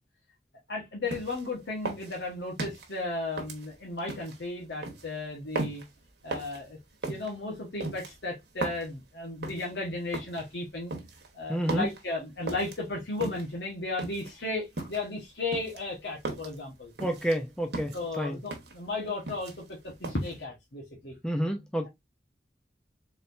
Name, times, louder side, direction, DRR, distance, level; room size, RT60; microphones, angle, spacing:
voice 1, 0.7-5.8 6.2-6.8 7.0-10.9 11.3-16.9 17.9-21.2, left 2 dB, 75° left, 1.3 m, -35 dB
sound 1, 1.1-1.5 1.9-2.9 3.4-4.4 4.8-5.1 5.6-5.9 6.3-6.6 7.0-7.3 7.8-8.9 9.4-9.7 10.1-10.4 10.9-11.3 11.7-12.0 12.5-12.8 13.2-13.6 14.0-14.3 14.8-15.1 15.5-16.6 17.0-17.4 17.7-18.0 18.5-18.8 19.1-19.7 20.0-20.3, right 2 dB, 70° right, 1.3 m, -36 dB
voice 2, 11.5-11.9 17.0-18.4 21.2-21.9, equal, 5° left, 0.5 m, -29 dB
4.1 x 3.6 x 2.6 m
head